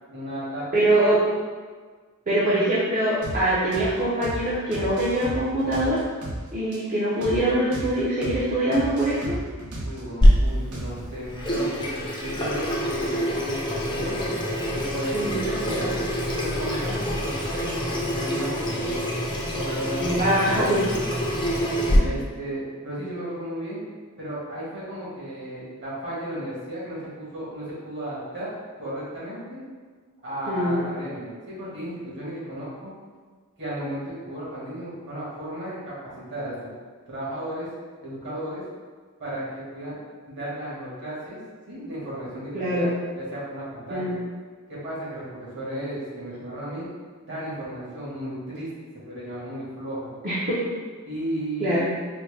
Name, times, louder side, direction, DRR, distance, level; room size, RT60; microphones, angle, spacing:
voice 1, 0.1-1.0 9.8-14.2 14.7-15.9 16.3-19.0 19.5-20.9 22.0-23.8 24.2-28.5 28.8-29.6 30.2-32.9 33.6-36.5 37.1-37.7 38.0-38.6 39.2-40.0 40.3-41.4 41.7-42.9 43.1-44.1 44.7-46.9 47.3-48.7 49.0-50.1 51.0-51.8, right 1 dB, 55° right, -8 dB, 1.4 m, -34 dB
voice 2, 0.7-1.2 2.3-6.0 6.5-9.4 15.1-15.4 20.0-20.8 21.9-22.2 30.5-30.8 42.5-42.9 43.9-44.2 50.2-50.6 51.6-51.9, right 1 dB, 35° right, -9 dB, 0.6 m, -23 dB
sound 1, 3.2-3.4 3.7-3.9 4.2-4.4 4.7-6.4 6.7-6.8 7.2-7.4 7.7-7.9 8.2-8.4 8.7-10.3 10.7-11.1, right 1 dB, 80° right, 0.9 m, -33 dB
Water tap faucet / Sink (filling or washing), 10.2-22.0, equal, 20° left, 0.5 m, -25 dB
4.1 x 2.1 x 3.2 m, 1.5 s
head